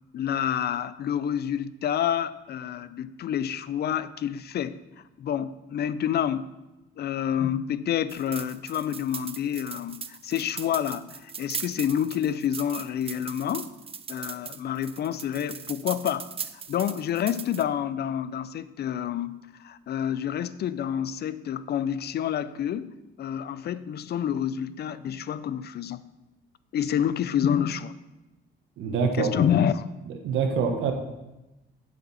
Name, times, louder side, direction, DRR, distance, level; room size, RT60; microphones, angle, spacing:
voice 1, 0.1-4.8 5.2-6.5 7.0-13.7 14.1-16.3 16.7-19.4 19.6-26.0 26.7-27.9 29.2-29.9, left 9 dB, 55° left, 15 dB, 0.5 m, -28 dB
sound 1, 8.1-17.6, right 6 dB, 30° right, 0.5 m, -39 dB
voice 2, 28.8-29.4 30.2-30.9, right 5 dB, 85° right, 4 dB, 1.2 m, -25 dB
8.4 x 7.1 x 4.2 m, 1.0 s
cardioid pair, 90°, 20 cm